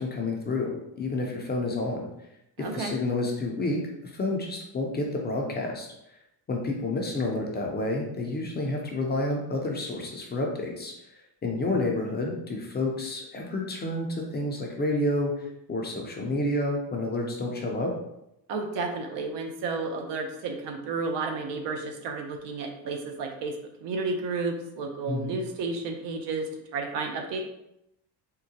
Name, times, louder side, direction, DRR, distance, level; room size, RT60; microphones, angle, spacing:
voice 1, 0.0-2.1 2.7-5.9 6.5-10.9 11.4-14.1 14.3-17.9 25.1-25.4, left 2 dB, 25° left, 0 dB, 0.5 m, -29 dB
voice 2, 2.6-2.9 18.5-27.4, right 3 dB, 75° right, 3 dB, 0.7 m, -32 dB
3.7 x 2.1 x 2.7 m, 0.82 s
cardioid pair, 120°, 43 cm